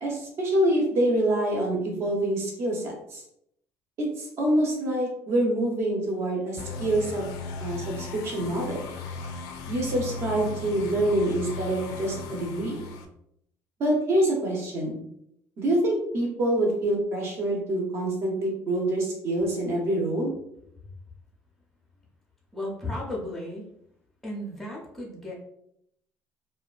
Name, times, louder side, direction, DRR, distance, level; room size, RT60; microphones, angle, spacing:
voice 1, 0.0-3.2 4.2-7.3 7.6-8.9 9.7-12.9 13.8-15.0 15.6-20.3, right 1 dB, 40° right, 0 dB, 0.7 m, -26 dB
sound 1, 6.6-13.0, left 4 dB, 80° left, 0.3 m, -36 dB
voice 2, 22.5-23.7 24.2-25.3, left 1 dB, ahead, -3 dB, 0.6 m, -34 dB
2.7 x 2.2 x 2.4 m, 0.75 s
cardioid pair, 175°, 6 cm